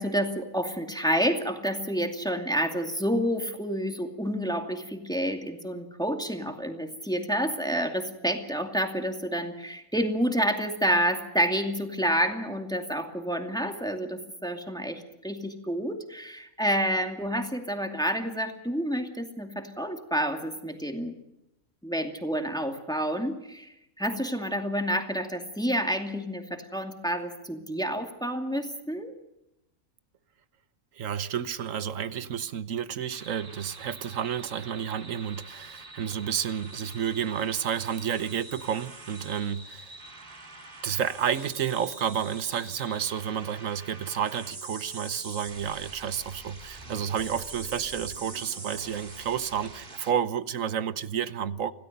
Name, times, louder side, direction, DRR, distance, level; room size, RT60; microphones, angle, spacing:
voice 1, 0.0-21.1 21.8-29.1, equal, 5° left, 2.4 m, -29 dB
voice 2, 31.0-40.0 40.8-51.7, right 8 dB, 65° right, 1.3 m, -31 dB
sound 1, 33.1-50.1, right 2 dB, 35° right, 2.2 m, -44 dB
26.5 x 17.0 x 6.8 m
omnidirectional pair, 1.5 m